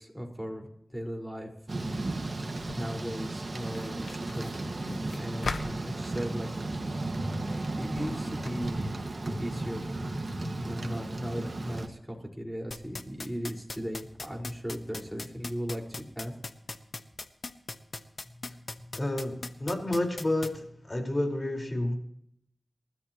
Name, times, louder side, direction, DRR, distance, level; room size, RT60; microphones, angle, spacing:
voice 1, 0.0-1.5 2.7-6.8 7.8-8.9 9.4-9.9 10.4-15.8 16.1-16.3, equal, 5° right, 0 dB, 5.1 m, -37 dB
Thunder / Rain, 1.7-11.9, right 2 dB, 60° right, 1.8 m, -34 dB
sound 1, 2.6-8.7, left 3 dB, 90° left, 1.2 m, -43 dB
sound 2, 12.7-20.5, left 3 dB, 65° left, 1.3 m, -38 dB
voice 2, 18.9-22.0, left 1 dB, 40° left, 2 dB, 4.9 m, -30 dB
28.5 x 13.5 x 3.1 m, 0.70 s
cardioid pair, 40°, 0 cm